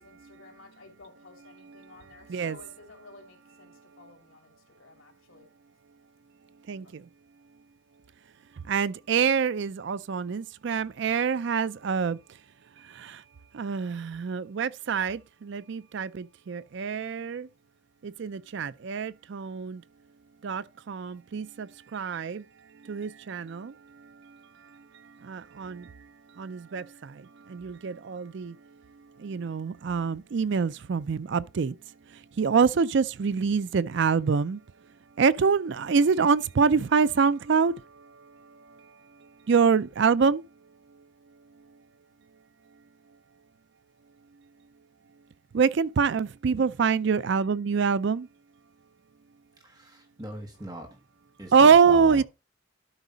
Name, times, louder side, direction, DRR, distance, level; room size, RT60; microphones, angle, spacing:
voice 1, 0.0-5.5, left 3 dB, 85° left, 2.8 m, -53 dB
voice 2, 1.6-2.6 6.7-7.1 8.6-12.2 12.8-13.2 13.5-17.5 18.0-19.8 20.4-22.4 22.8-26.1 26.3-28.6 29.0-31.8 32.1-34.6 35.2-38.9 39.2-40.4 45.5-48.3 51.5-52.2, right 5 dB, 60° right, 0.4 m, -26 dB
voice 3, 49.6-51.0 51.4-52.2, right 1 dB, 20° right, 1.3 m, -41 dB
12.0 x 5.0 x 4.0 m
head